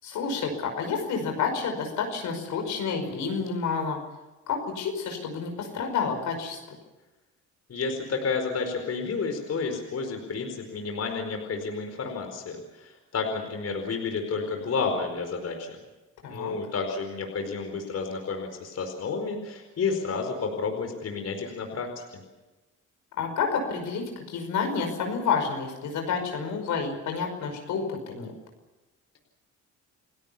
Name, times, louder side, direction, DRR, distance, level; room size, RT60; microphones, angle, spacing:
voice 1, 0.0-4.0 4.5-6.6 16.2-16.5 23.2-28.3, left 5 dB, 80° left, 4 dB, 5.6 m, -29 dB
voice 2, 7.7-15.7 16.3-22.2, left 4 dB, 55° left, 4 dB, 4.7 m, -31 dB
29.5 x 17.5 x 7.2 m, 1.1 s
cardioid pair, 90°, 30 cm